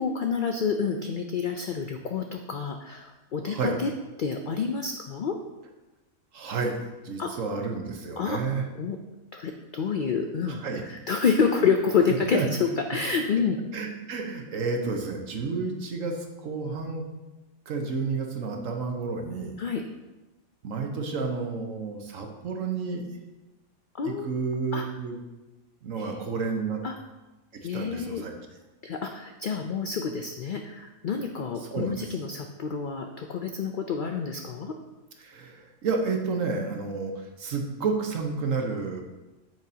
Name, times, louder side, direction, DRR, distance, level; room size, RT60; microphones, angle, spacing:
voice 1, 0.0-3.9 4.2-5.4 7.2-7.3 8.2-8.4 8.8-9.0 9.3-13.6 19.6-19.8 23.9-24.3 24.7-24.9 26.0-26.1 26.8-27.0 27.6-28.3 28.8-34.7, left 5 dB, 60° left, 5 dB, 0.5 m, -28 dB
voice 2, 3.4-3.7 6.3-8.6 10.5-10.8 12.3-12.5 13.7-17.1 17.7-19.6 20.6-23.0 24.0-25.2 25.8-26.8 27.7-28.3 31.6-32.1 35.2-37.1 37.4-39.0, right 4 dB, 70° right, 3 dB, 1.4 m, -30 dB
9.0 x 7.8 x 2.8 m, 1.1 s
omnidirectional pair, 1.5 m